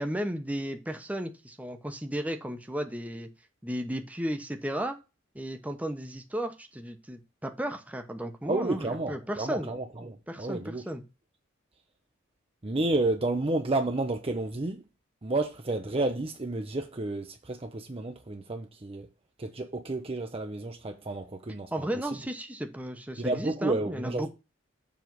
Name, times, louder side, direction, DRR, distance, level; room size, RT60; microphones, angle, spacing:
voice 1, 0.0-3.3 3.6-5.0 5.3-9.7 10.3-11.0 21.7-24.3, right 1 dB, 5° right, 1.0 m, -34 dB
voice 2, 8.5-10.9 12.6-14.8 15.2-19.1 19.4-21.9 23.2-24.3, right 2 dB, 30° right, 0.7 m, -31 dB
7.1 x 3.5 x 6.1 m
head